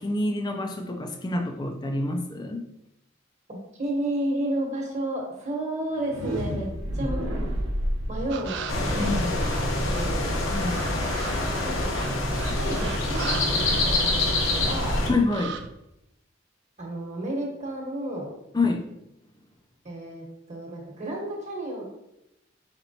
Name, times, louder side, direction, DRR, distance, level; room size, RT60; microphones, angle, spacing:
voice 1, 0.0-2.7 9.0-9.3 10.5-10.8 15.1-15.6 18.5-18.8, left 2 dB, 20° left, 4 dB, 0.4 m, -27 dB
voice 2, 3.5-6.7 6.9-7.2 8.1-9.3 9.6-10.4 11.6-12.0 12.3-15.0 16.8-18.3 19.8-21.8, right 1 dB, 35° right, -2 dB, 1.2 m, -32 dB
sound 1, 5.9-11.8, equal, 85° right, 0.9 m, -32 dB
sound 2, 8.3-10.2 10.6-14.5 14.8-15.7, right 6 dB, 60° right, 0.4 m, -39 dB
sound 3, 8.7-15.1, left 2 dB, 85° left, 0.8 m, -26 dB
4.3 x 4.2 x 2.7 m, 0.86 s
head